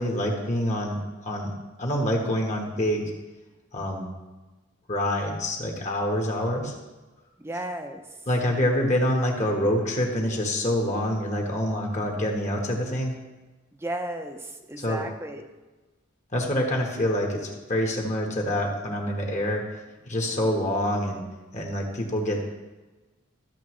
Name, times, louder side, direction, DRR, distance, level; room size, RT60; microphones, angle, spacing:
voice 1, 0.0-3.1 3.7-4.1 4.9-6.7 8.3-13.1 14.8-15.0 16.3-19.6 20.1-21.2 21.5-22.4, left 1 dB, 35° left, 1 dB, 1.3 m, -26 dB
voice 2, 7.4-8.0 13.7-15.4, right 1 dB, 10° right, 4 dB, 0.7 m, -34 dB
13.0 x 6.7 x 3.1 m, 1.2 s
head